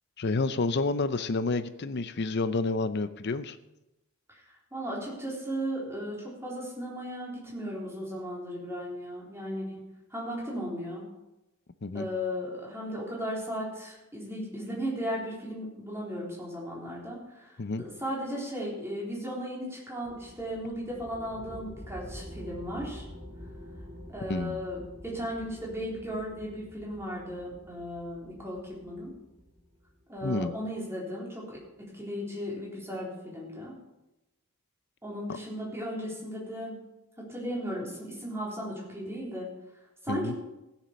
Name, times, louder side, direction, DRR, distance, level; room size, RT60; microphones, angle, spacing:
voice 1, 0.2-3.6 11.8-12.1 17.6-17.8 24.3-24.6 30.2-30.5 40.1-40.3, left 3 dB, 50° left, 13 dB, 0.6 m, -29 dB
voice 2, 4.7-9.8 10.1-11.1 11.9-17.5 17.8-23.0 24.1-29.1 30.1-33.7 35.0-36.8 37.2-39.5 40.0-40.4, equal, 10° right, -5 dB, 3.8 m, -36 dB
sound 1, 20.0-30.0, equal, 45° right, 2.2 m, -47 dB
16.0 x 7.3 x 5.4 m, 0.95 s
head